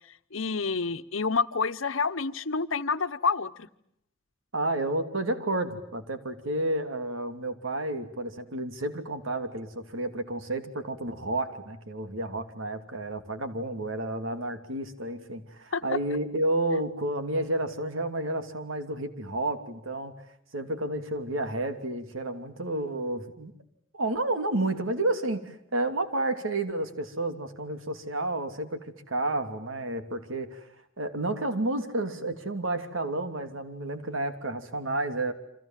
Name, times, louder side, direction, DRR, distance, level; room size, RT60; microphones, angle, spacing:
voice 1, 0.3-3.7 15.7-15.8, left 4 dB, 90° left, 11 dB, 1.1 m, -28 dB
voice 2, 4.5-20.1 20.5-23.5 23.9-28.8 29.1-30.7 31.0-35.3, right 2 dB, 90° right, 8 dB, 3.0 m, -31 dB
29.0 x 26.0 x 7.6 m, 0.71 s
head